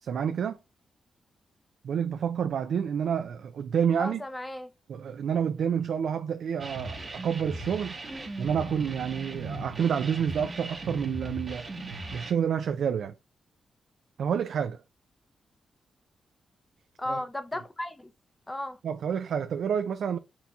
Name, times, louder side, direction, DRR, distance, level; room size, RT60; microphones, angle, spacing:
voice 1, 0.0-0.6 1.8-4.2 4.9-8.0 8.4-11.7 12.1-13.1 14.2-14.8 17.1-17.2 18.8-20.2, right 7 dB, 80° right, 0.3 m, -29 dB
voice 2, 4.0-4.7 8.1-8.3 17.0-18.1 18.5-18.8, left 1 dB, 15° left, 0.5 m, -35 dB
sound 1, 6.6-12.3, right 2 dB, 40° right, 0.9 m, -38 dB
4.4 x 3.9 x 2.3 m
cardioid pair, 85°, 0 cm